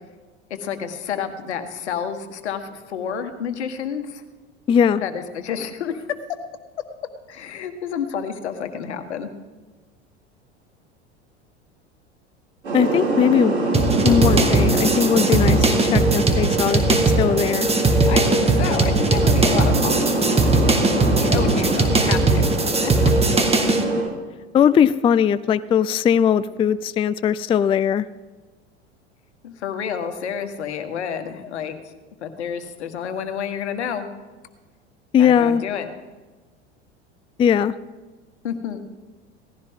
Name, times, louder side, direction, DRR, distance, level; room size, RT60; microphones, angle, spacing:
voice 1, 0.5-4.2 5.0-6.1 7.3-9.3 18.1-20.1 21.2-22.5 22.8-23.1 29.4-31.7 32.2-34.1 35.2-35.9 38.4-38.8, left 7 dB, 75° left, 8 dB, 1.6 m, -29 dB
voice 2, 4.7-5.0 12.7-13.6 14.0-17.7 24.5-28.1 35.1-35.6 37.4-37.7, left 8 dB, 15° left, 16 dB, 0.3 m, -19 dB
sound 1, 12.6-24.0, right 2 dB, 85° right, 5.6 m, -24 dB
sound 2, 13.7-23.8, right 3 dB, 20° right, 1.9 m, -19 dB
17.5 x 15.0 x 3.7 m, 1.3 s
hypercardioid pair, 80°, 34 cm